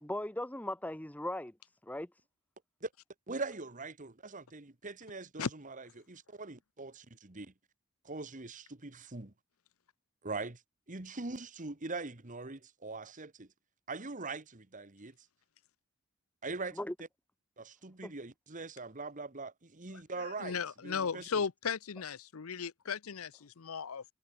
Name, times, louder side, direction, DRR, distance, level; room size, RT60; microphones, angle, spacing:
voice 1, 0.0-1.6 1.8-2.1 16.7-16.9 18.0-18.1, left 1 dB, 5° left, 1.0 m, -38 dB
voice 2, 3.3-7.5 8.0-9.3 10.2-10.6 10.9-13.5 13.9-15.1 16.4-16.8 17.6-21.4, right 3 dB, 40° right, 1.6 m, -42 dB
voice 3, 19.9-24.0, left 6 dB, 85° left, 0.7 m, -36 dB
head